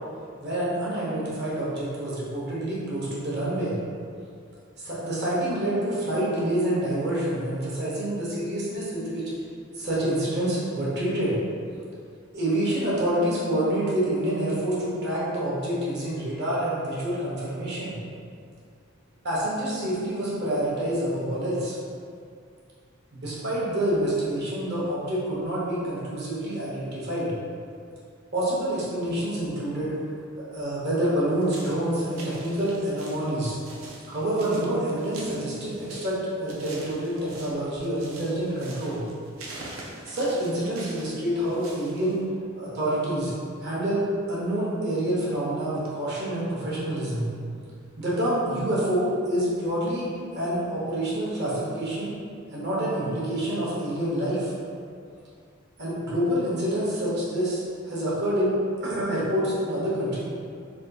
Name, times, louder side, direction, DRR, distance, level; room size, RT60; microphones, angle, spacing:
voice 1, 0.4-3.7 4.8-9.2 9.7-11.4 12.3-18.0 19.2-21.8 23.1-27.3 28.3-30.0 30.5-33.6 34.1-39.0 40.0-42.2 42.6-43.3 43.6-47.3 48.0-50.1 50.3-52.1 52.5-54.5 55.8-60.2, right 1 dB, 55° right, -7 dB, 0.9 m, -27 dB
sound 1, 31.4-42.2, right 2 dB, 80° right, 0.5 m, -44 dB
3.5 x 2.3 x 2.7 m, 2.3 s
head